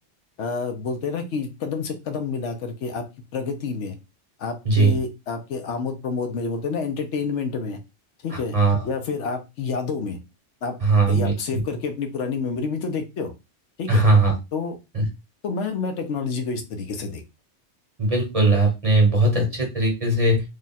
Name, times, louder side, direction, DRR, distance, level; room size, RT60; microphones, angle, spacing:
voice 1, 0.4-3.0 3.3-3.9 4.4-7.8 8.2-8.6 8.8-10.2 10.6-10.8 11.1-13.3 13.8-14.0 14.5-14.8 15.4-17.2, left 5 dB, 75° left, 6 dB, 1.0 m, -28 dB
voice 2, 4.6-5.0 8.3-8.8 10.8-11.3 13.9-14.3 14.9-15.0 18.0-20.4, right 2 dB, 30° right, 1 dB, 1.1 m, -19 dB
3.2 x 2.3 x 4.1 m, 0.25 s
omnidirectional pair, 1.2 m